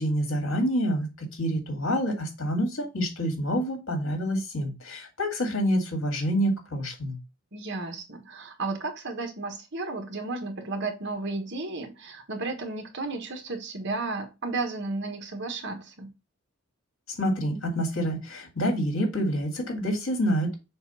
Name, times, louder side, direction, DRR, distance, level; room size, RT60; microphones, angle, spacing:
voice 1, 0.0-7.2 17.1-20.6, equal, 90° left, 2.4 m, -27 dB
voice 2, 7.5-16.1, right 3 dB, 60° right, 1.4 m, -33 dB
6.9 x 2.5 x 5.6 m
head